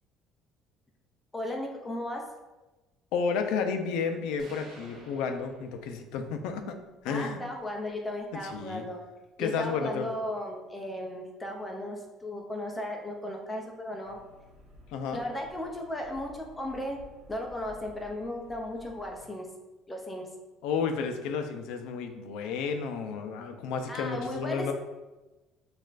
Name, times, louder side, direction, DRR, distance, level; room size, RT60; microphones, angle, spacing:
voice 1, 1.3-2.2 7.1-9.0 9.4-14.2 15.1-17.0 17.3-19.5 19.9-20.3 23.9-24.7, left 1 dB, 10° left, 1 dB, 0.4 m, -35 dB
voice 2, 3.1-6.8 7.0-7.4 8.3-8.8 9.4-10.1 14.9-15.2 20.6-24.7, left 5 dB, 75° left, 6 dB, 0.4 m, -32 dB
sound 1, 4.4-6.3, right 1 dB, 45° right, 1.1 m, -51 dB
sound 2, 14.0-19.2, left 1 dB, 65° right, 1.1 m, -54 dB
6.2 x 2.4 x 2.4 m, 1.1 s
cardioid pair, 175°, 0 cm